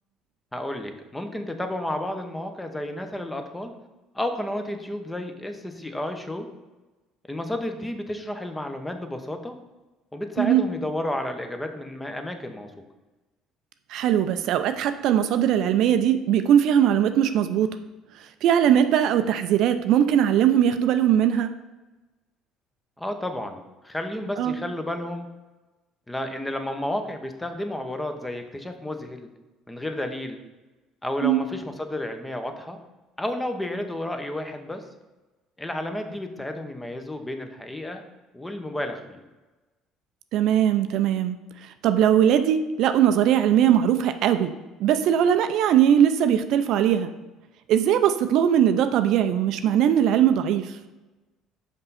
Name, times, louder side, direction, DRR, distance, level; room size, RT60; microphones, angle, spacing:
voice 1, 0.5-3.7 4.1-6.5 7.3-9.6 10.1-12.7 23.0-25.3 26.1-29.3 29.7-30.4 31.0-32.8 33.2-34.8 35.6-38.0 38.3-39.2, left 1 dB, 10° left, 6 dB, 0.9 m, -31 dB
voice 2, 13.9-17.7 18.2-21.5 24.4-24.5 31.2-31.4 40.3-44.5 44.8-47.1 47.7-50.8, right 10 dB, 65° right, 9 dB, 0.4 m, -20 dB
5.4 x 5.4 x 4.1 m, 1.1 s
hypercardioid pair, 70°, 0 cm